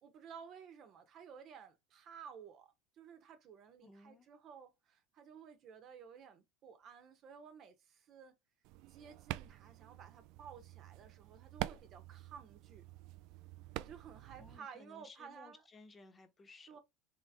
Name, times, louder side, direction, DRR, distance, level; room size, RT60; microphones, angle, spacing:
voice 1, 0.0-8.4 8.9-12.8 13.8-15.6 16.7-16.8, right 7 dB, 45° right, 1.1 m, -54 dB
voice 2, 3.8-4.3 14.4-16.8, left 3 dB, 25° left, 1.1 m, -58 dB
sound 1, 8.6-14.6, right 16 dB, 65° right, 0.3 m, -47 dB
3.8 x 3.5 x 3.6 m
supercardioid pair, 105°, 0 cm